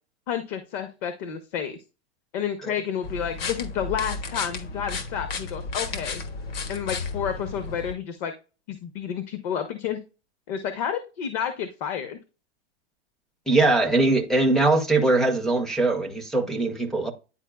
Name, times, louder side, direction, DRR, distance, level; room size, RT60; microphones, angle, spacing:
voice 1, 0.3-1.8 2.3-6.2 6.7-8.3 8.7-10.0 10.5-12.2, left 8 dB, 40° left, 0.8 m, -30 dB
sound 1, 3.0-7.9, left 4 dB, 60° left, 1.5 m, -33 dB
voice 2, 13.5-17.1, right 2 dB, ahead, 0.4 m, -21 dB
9.9 x 4.5 x 2.2 m
supercardioid pair, 155°, 32 cm